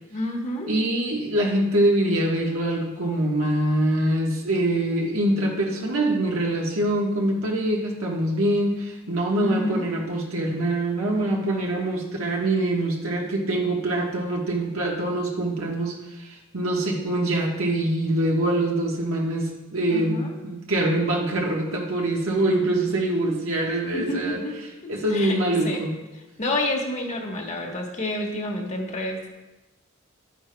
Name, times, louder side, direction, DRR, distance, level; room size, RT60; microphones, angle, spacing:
voice 1, 0.1-0.7 9.4-9.9 19.9-20.4 23.9-24.6 24.8-25.4 25.6-25.8 26.4-29.3, left 1 dB, 35° left, 1 dB, 1.3 m, -29 dB
voice 2, 0.7-24.4 24.9-25.9, right 1 dB, 80° right, -1 dB, 1.3 m, -24 dB
11.5 x 9.9 x 2.3 m, 1.1 s
head